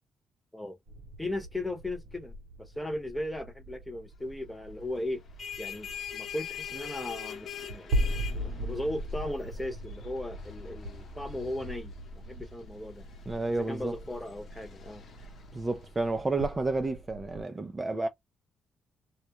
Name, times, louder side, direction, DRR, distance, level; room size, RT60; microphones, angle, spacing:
sound 1, 0.9-17.4, equal, 80° right, 0.8 m, -39 dB
voice 1, 1.2-5.2 5.6-7.9 8.3-11.9 12.3-13.0 13.5-15.0, left 1 dB, 10° left, 0.9 m, -37 dB
sound 2, 5.1-16.4, left 9 dB, 55° left, 0.9 m, -44 dB
voice 2, 13.3-13.9 15.5-18.1, right 2 dB, 20° right, 0.5 m, -30 dB
2.3 x 2.0 x 2.8 m
cardioid pair, 90°, 0 cm